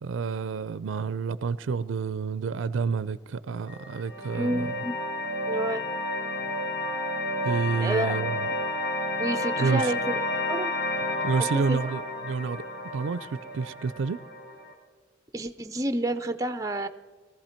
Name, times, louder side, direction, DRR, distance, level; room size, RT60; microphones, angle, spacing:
voice 1, 0.0-4.7 7.4-8.5 9.6-9.9 11.2-12.6 12.9-14.2, right 5 dB, 90° right, 0.4 m, -29 dB
sound 1, 3.7-14.7, left 1 dB, 85° left, 2.6 m, -31 dB
voice 2, 4.3-4.9 5.5-5.8 7.8-8.3 9.2-10.1 10.5-10.7 11.5-11.8 15.3-16.9, right 1 dB, 15° right, 0.5 m, -29 dB
19.5 x 14.5 x 4.4 m
head